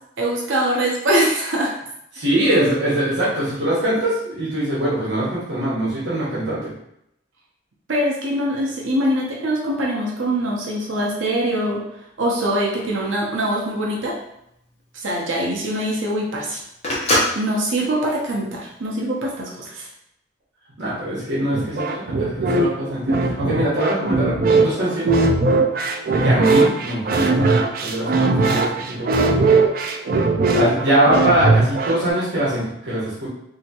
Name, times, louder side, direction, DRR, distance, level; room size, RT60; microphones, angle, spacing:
voice 1, 0.2-1.7 7.9-11.8 12.2-14.2 15.0-16.6 17.3-19.9, right 1 dB, 90° right, -3 dB, 0.7 m, -23 dB
voice 2, 2.1-6.7 20.8-25.1 26.2-27.4 27.8-29.5 30.5-33.3, right 1 dB, 75° right, -8 dB, 1.2 m, -22 dB
Telephone, 13.9-19.2, left 1 dB, 35° left, 0.9 m, -26 dB
sound 1, 21.5-32.1, right 3 dB, 50° right, 0.3 m, -19 dB
3.4 x 2.8 x 2.8 m, 0.79 s
head